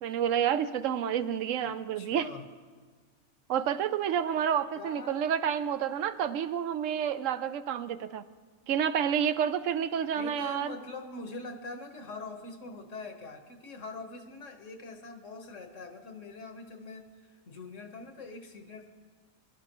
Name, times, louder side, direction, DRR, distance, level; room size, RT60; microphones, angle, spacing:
voice 1, 0.0-2.3 3.5-8.2 8.7-10.8, right 8 dB, 90° right, 12 dB, 1.0 m, -29 dB
voice 2, 2.0-2.4 4.7-5.2 10.2-18.9, left 3 dB, 80° left, 4 dB, 1.6 m, -43 dB
23.0 x 12.0 x 3.0 m, 1.4 s
omnidirectional pair, 1.3 m